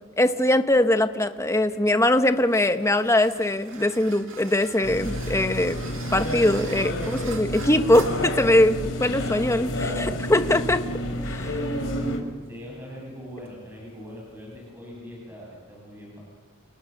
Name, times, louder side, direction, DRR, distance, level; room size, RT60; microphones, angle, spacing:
voice 1, 0.2-5.8 6.1-10.8, left 1 dB, 15° left, 8 dB, 1.3 m, -21 dB
sound 1, 1.4-14.7, right 3 dB, 70° right, 2.6 m, -44 dB
sound 2, 4.8-12.2, left 1 dB, 65° left, 5.9 m, -30 dB
voice 2, 11.0-11.6 12.4-16.2, equal, 10° right, -3 dB, 7.8 m, -42 dB
29.5 x 29.5 x 6.8 m, 1.4 s
head